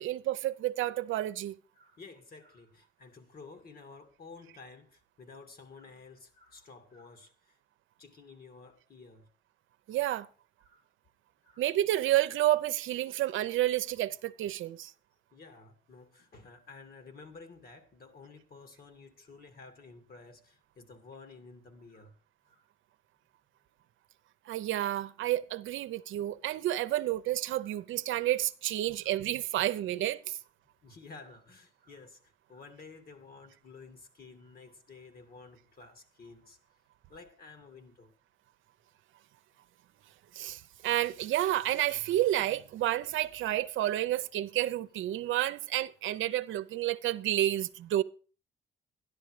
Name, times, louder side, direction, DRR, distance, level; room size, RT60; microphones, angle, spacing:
voice 1, 0.0-1.6 9.9-10.3 11.6-14.9 24.5-30.4 40.3-48.0, right 14 dB, 80° right, 0.7 m, -30 dB
voice 2, 1.7-7.6 8.0-9.3 10.6-10.8 11.4-11.6 15.3-22.2 22.5-22.7 27.6-27.7 29.0-29.3 30.8-36.6 37.1-38.1, left 4 dB, 50° left, 2.4 m, -52 dB
12.5 x 11.0 x 4.9 m
cardioid pair, 90°, 20 cm